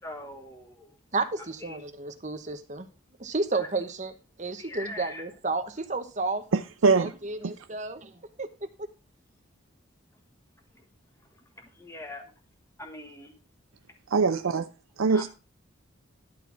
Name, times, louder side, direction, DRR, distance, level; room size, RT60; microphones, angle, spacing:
voice 1, 0.0-1.0 1.6-1.8 3.5-3.7 4.6-5.2 10.1-10.2 10.7-10.9 11.2-12.3 12.8-13.3 15.1-15.3, left 1 dB, 15° left, 1.3 m, -42 dB
voice 2, 1.1-2.9 3.2-4.1 4.4-6.4 7.0-8.5 8.8-8.9, right 3 dB, 35° right, 1.0 m, -32 dB
voice 3, 6.5-7.1 7.4-7.5 14.1-14.7 15.0-15.3, right 4 dB, 80° right, 0.5 m, -23 dB
11.5 x 4.4 x 5.9 m
head